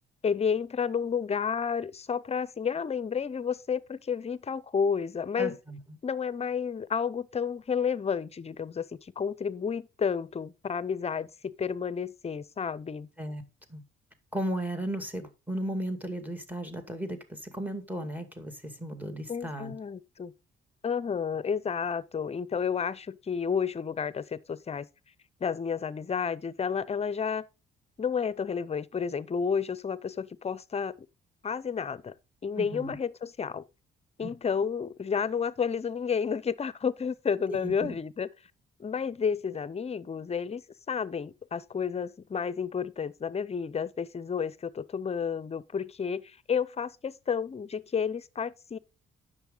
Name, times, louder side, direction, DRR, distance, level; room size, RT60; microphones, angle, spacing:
voice 1, 0.2-5.5 6.0-13.1 19.3-20.3 20.8-24.9 25.4-27.4 28.0-30.9 31.4-32.1 32.4-33.6 34.2-38.3 38.8-40.6 40.9-48.8, left 6 dB, 30° left, 0.6 m, -31 dB
voice 2, 5.4-6.0 13.2-13.4 13.7-13.8 14.3-19.7 32.6-33.0 34.2-34.3 37.5-38.0, right 1 dB, 10° right, 2.2 m, -35 dB
10.0 x 6.7 x 3.9 m
cardioid pair, 90°, 20 cm